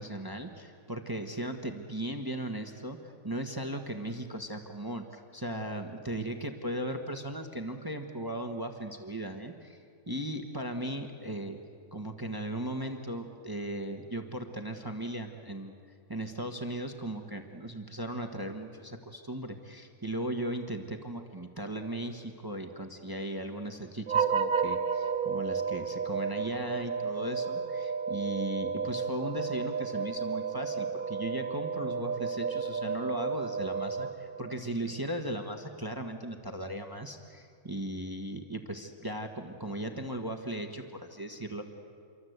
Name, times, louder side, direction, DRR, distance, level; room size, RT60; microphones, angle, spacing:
voice 1, 0.0-11.6 11.9-15.7 16.1-34.1 34.4-41.6, right 1 dB, 15° right, 5 dB, 1.4 m, -37 dB
sound 1, 24.1-34.6, right 5 dB, 40° right, 0.9 m, -32 dB
28.0 x 24.0 x 8.1 m, 2.3 s
omnidirectional pair, 1.5 m